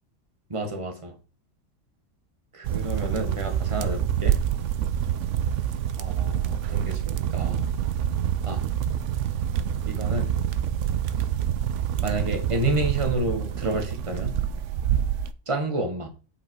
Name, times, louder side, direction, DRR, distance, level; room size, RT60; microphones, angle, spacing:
voice 1, 0.5-1.1 2.5-4.4 6.0-7.6 8.4-8.6 9.8-10.3 12.0-14.3 15.5-16.1, right 2 dB, 25° right, 4 dB, 1.6 m, -29 dB
sound 1, 2.6-15.3, right 10 dB, 75° right, 1.0 m, -27 dB
8.6 x 5.2 x 4.6 m, 0.34 s
omnidirectional pair, 1.3 m